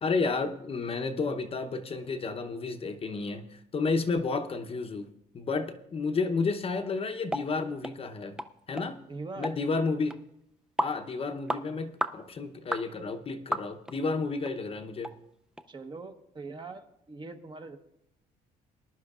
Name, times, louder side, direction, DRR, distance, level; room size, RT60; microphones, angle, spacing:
voice 1, 0.0-5.1 5.3-8.4 8.7-9.0 9.4-10.2 10.8-15.1, left 4 dB, 35° left, 7 dB, 0.8 m, -31 dB
sound 1, 7.3-7.5 7.8-8.0 8.4-8.5 8.8-8.9 9.4-9.6 10.1-10.2 10.8-11.0 11.5-11.6 12.0-12.2 12.7-12.9 13.5-14.0 14.4-14.5 15.0-15.1 15.6-15.7, equal, 5° right, 0.5 m, -32 dB
voice 2, 9.1-9.5 15.7-17.8, right 3 dB, 25° right, 6 dB, 1.0 m, -42 dB
20.0 x 11.0 x 2.4 m, 0.82 s
cardioid pair, 110°, 17 cm